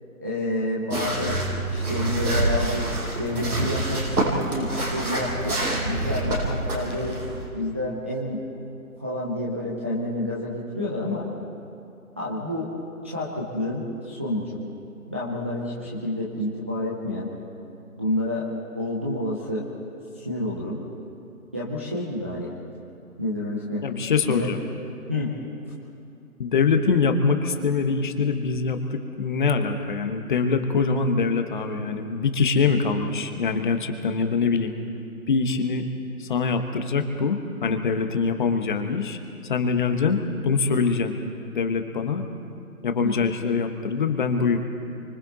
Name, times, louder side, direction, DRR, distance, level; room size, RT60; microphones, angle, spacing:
voice 1, 0.2-1.4 1.7-5.6 5.8-7.2 7.5-8.4 9.0-11.3 12.2-12.7 13.0-14.5 15.1-17.3 18.0-18.4 18.7-19.7 20.2-20.8 21.5-22.5 23.2-23.8 24.2-24.5 25.1-25.3 43.0-43.4, left 1 dB, 10° right, -7 dB, 0.6 m, -29 dB
sound 1, 0.9-7.5, right 2 dB, 80° right, 6.5 m, -27 dB
voice 2, 23.8-24.6 26.4-34.7 35.3-35.8 36.2-39.2 39.5-41.2 41.5-42.2 42.8-44.6, left 5 dB, 35° left, 7 dB, 1.3 m, -24 dB
29.5 x 24.5 x 4.1 m, 2.6 s
figure-of-eight pair, 150°, 44 cm